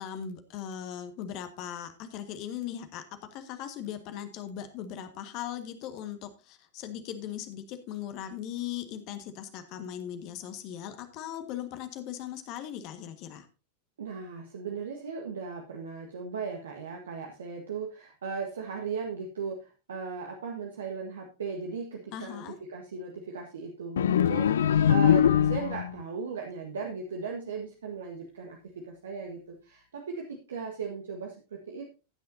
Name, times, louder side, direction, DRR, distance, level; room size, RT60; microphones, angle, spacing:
voice 1, 0.0-3.0 3.3-13.5 22.1-22.6, left 10 dB, 40° left, 7 dB, 1.6 m, -39 dB
voice 2, 14.0-22.4 22.7-31.9, right 5 dB, 65° right, 0 dB, 1.6 m, -37 dB
sound 1, 24.0-26.0, left 9 dB, 65° left, 0.5 m, -22 dB
15.0 x 9.4 x 2.8 m, 0.32 s
figure-of-eight pair, 90°, 0 cm